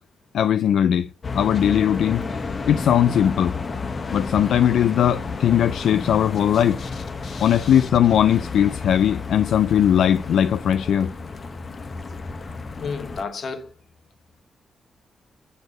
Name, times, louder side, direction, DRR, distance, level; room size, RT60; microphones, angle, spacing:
voice 1, 0.3-1.1 1.3-2.2 2.7-3.5 4.1-6.8 7.4-11.1, left 9 dB, 85° left, 0.3 m, -19 dB
sound 1, 1.2-13.2, left 4 dB, 40° left, 0.8 m, -32 dB
voice 2, 6.5-6.9 7.2-7.9 12.8-13.7, left 5 dB, 60° left, 1.1 m, -34 dB
6.9 x 4.3 x 6.3 m
cardioid pair, 105°, 0 cm